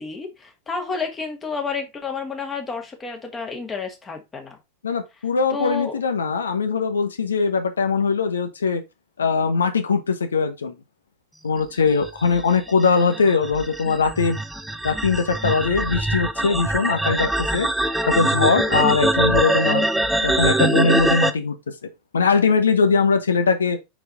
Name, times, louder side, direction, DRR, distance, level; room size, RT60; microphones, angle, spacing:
voice 1, 0.0-4.6 5.5-6.0, left 5 dB, 20° left, 2.0 m, -30 dB
voice 2, 4.8-8.8 9.2-10.7 11.4-14.4 14.8-17.7 18.1-19.9 20.2-21.5 22.1-23.8, left 5 dB, 70° left, 1.2 m, -21 dB
sound 1, 12.0-21.3, right 1 dB, 5° right, 0.6 m, -23 dB
6.0 x 4.6 x 4.1 m
figure-of-eight pair, 90°, 0 cm